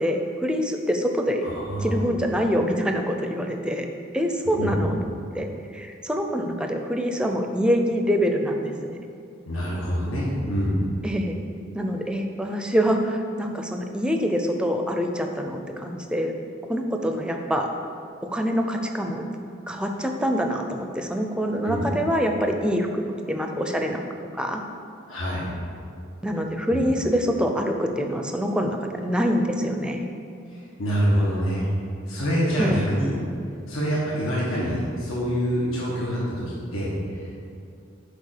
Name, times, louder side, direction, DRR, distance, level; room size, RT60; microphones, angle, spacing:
voice 1, 0.0-1.4 1.8-3.9 4.1-5.0 5.3-9.0 11.0-11.4 11.7-16.3 16.7-17.7 18.2-19.3 19.7-24.0 24.3-24.6 26.2-30.1 32.6-32.8, equal, 5° right, 4 dB, 0.5 m, -25 dB
voice 2, 1.4-1.9 4.6-4.8 9.5-10.8 21.6-21.8 25.1-25.5 26.7-26.8 30.5-31.7 32.1-33.1 33.7-36.4 36.7-37.3, equal, 80° left, -6 dB, 1.5 m, -25 dB
6.7 x 5.1 x 6.6 m, 2.4 s
head